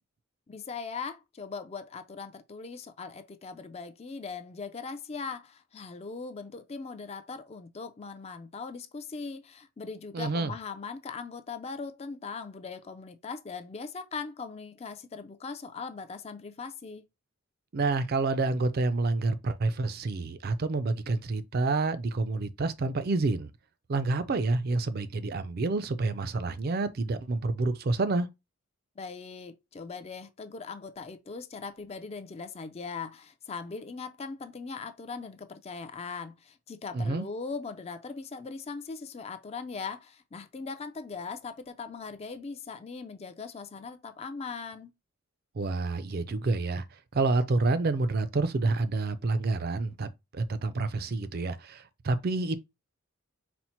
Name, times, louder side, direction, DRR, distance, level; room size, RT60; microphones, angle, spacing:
voice 1, 0.5-17.1 29.0-44.9, left 4 dB, 30° left, 0.4 m, -40 dB
voice 2, 10.1-10.5 17.7-23.5 23.9-28.3 36.9-37.3 45.5-46.8 47.1-52.6, right 3 dB, 45° right, 0.4 m, -28 dB
4.2 x 2.0 x 4.3 m
head